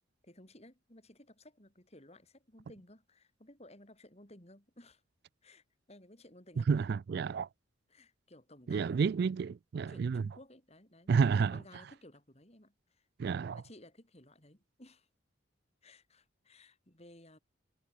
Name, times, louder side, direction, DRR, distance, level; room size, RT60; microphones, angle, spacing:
voice 1, 0.2-5.0 5.4-6.7 7.9-9.2 9.9-13.1 13.5-15.1 15.8-17.4, left 1 dB, 30° left, 4.2 m, -57 dB
voice 2, 6.6-7.5 8.7-10.2 11.1-11.6 13.2-13.6, right 5 dB, 50° right, 0.3 m, -30 dB
head